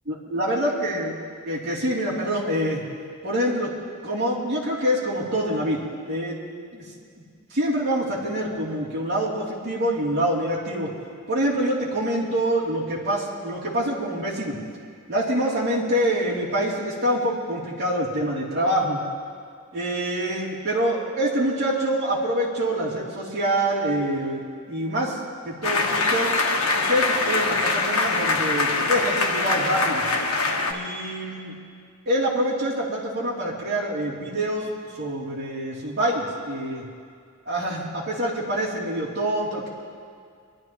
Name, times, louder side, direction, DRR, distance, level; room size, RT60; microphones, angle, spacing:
voice 1, 0.0-1.1 1.4-2.8 3.2-3.7 4.0-6.4 6.7-6.8 7.5-10.9 11.3-14.6 15.1-19.0 19.7-24.4 24.7-26.3 26.7-30.0 30.7-31.5 32.0-34.7 35.0-36.8 37.4-39.7, right 1 dB, 50° right, -7 dB, 3.2 m, -25 dB
sound 1, 25.6-30.7, left 3 dB, 85° left, 1.4 m, -23 dB
25.0 x 12.0 x 3.1 m, 2.2 s
head